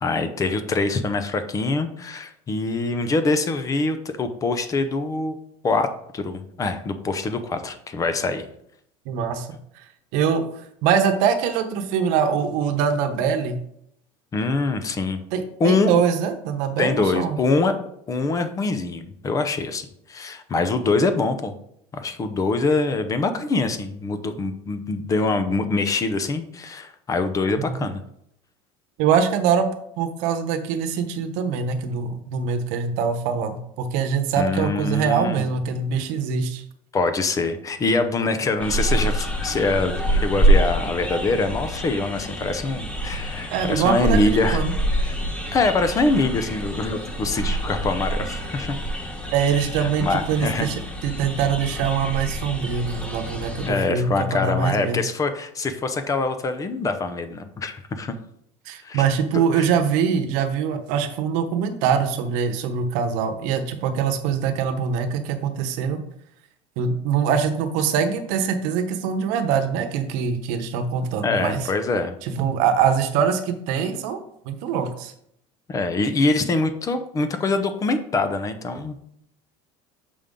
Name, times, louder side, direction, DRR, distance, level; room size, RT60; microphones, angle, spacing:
voice 1, 0.0-5.3 5.6-5.9 6.1-8.4 14.3-15.2 15.6-16.0 16.8-17.7 18.1-21.5 21.9-28.0 34.4-35.5 36.9-44.6 44.9-45.2 45.5-48.8 49.8-50.7 53.6-58.2 58.8-59.0 59.3-59.7 71.2-72.1 75.7-79.0, left 3 dB, 25° left, 9 dB, 0.6 m, -24 dB
voice 2, 9.1-9.5 10.1-10.4 10.8-13.6 15.3-17.4 27.6-27.8 29.0-29.7 30.0-36.6 43.5-44.7 49.3-55.0 58.7-66.0 66.8-71.6 72.4-74.2 74.5-75.1, right 7 dB, 70° right, 8 dB, 1.0 m, -23 dB
sound 1, 38.6-53.7, right 1 dB, 10° left, 1.1 m, -26 dB
6.8 x 5.3 x 3.7 m, 0.73 s
cardioid pair, 135°, 14 cm